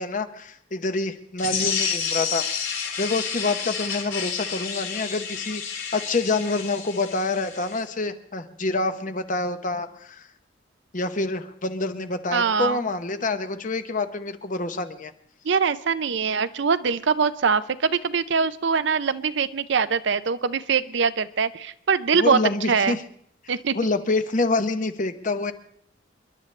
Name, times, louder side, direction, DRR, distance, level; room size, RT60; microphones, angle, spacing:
voice 1, 0.0-2.7 3.0-10.3 10.9-15.1 22.1-23.0 23.7-25.5, left 3 dB, 40° left, 9 dB, 0.9 m, -27 dB
sound 1, 1.4-7.8, left 7 dB, 85° left, 4.1 m, -30 dB
voice 2, 12.3-12.8 15.4-22.4 22.7-23.0 23.5-23.7, right 5 dB, 60° right, 13 dB, 0.5 m, -23 dB
29.0 x 11.5 x 3.3 m, 0.67 s
head